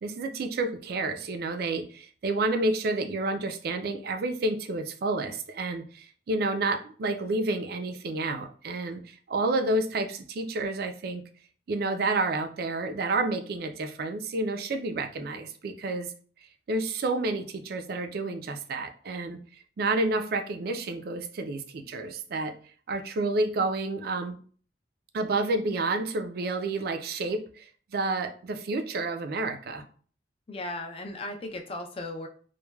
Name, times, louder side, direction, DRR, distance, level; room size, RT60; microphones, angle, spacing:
voice 1, 0.0-11.2 11.7-16.1 16.7-19.4 19.8-22.5 22.9-24.4 25.1-29.8, right 2 dB, 60° right, 7 dB, 0.4 m, -30 dB
voice 2, 30.5-32.3, left 2 dB, 30° left, 5 dB, 0.4 m, -36 dB
3.1 x 2.1 x 2.2 m, 0.43 s
head